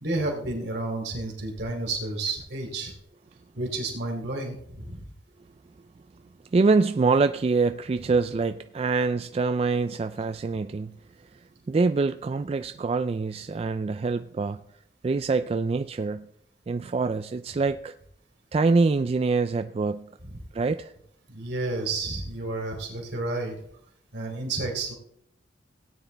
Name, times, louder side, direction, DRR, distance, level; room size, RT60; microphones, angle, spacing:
voice 1, 0.0-2.9 3.6-5.1 21.3-23.5 24.1-24.9, right 2 dB, 65° right, 1 dB, 2.9 m, -31 dB
voice 2, 6.5-11.0 11.2-14.6 15.0-16.3 16.7-17.9 18.5-20.1 20.5-20.9, right 4 dB, 35° right, 10 dB, 0.3 m, -25 dB
17.0 x 9.4 x 3.4 m, 0.72 s
head